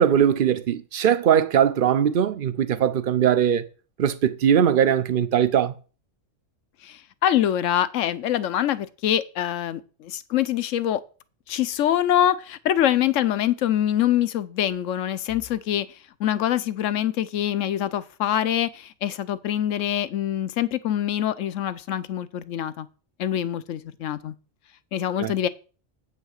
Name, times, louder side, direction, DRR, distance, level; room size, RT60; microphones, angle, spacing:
voice 1, 0.0-3.6 4.0-5.7 25.2-25.3, right 9 dB, 50° right, 0.7 m, -20 dB
voice 2, 6.8-11.0 11.5-22.9 23.2-24.3 24.9-25.5, left 11 dB, 75° left, 1.0 m, -24 dB
8.2 x 5.7 x 6.4 m
omnidirectional pair, 1.4 m